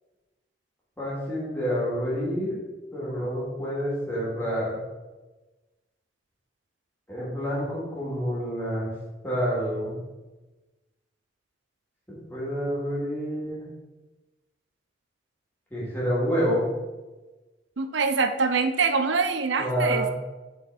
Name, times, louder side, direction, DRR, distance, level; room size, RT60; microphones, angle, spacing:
voice 1, 1.0-2.6 2.9-4.8 7.1-8.9 9.2-10.0 12.1-13.7 15.7-16.7 19.6-20.1, equal, 10° left, -8 dB, 2.5 m, -28 dB
voice 2, 17.8-20.1, right 4 dB, 85° right, 8 dB, 0.6 m, -24 dB
8.3 x 4.2 x 4.1 m, 1.2 s
head